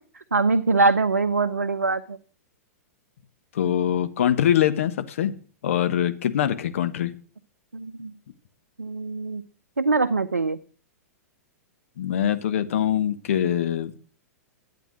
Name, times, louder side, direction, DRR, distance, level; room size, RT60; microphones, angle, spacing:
voice 1, 0.1-2.2 7.7-8.1 8.8-9.4 9.8-10.6, right 3 dB, 85° right, 10 dB, 0.6 m, -23 dB
voice 2, 3.5-5.3 5.6-7.1 12.0-13.9, left 10 dB, 60° left, 9 dB, 1.3 m, -23 dB
12.5 x 8.6 x 6.2 m, 0.41 s
figure-of-eight pair, 105°, 8 cm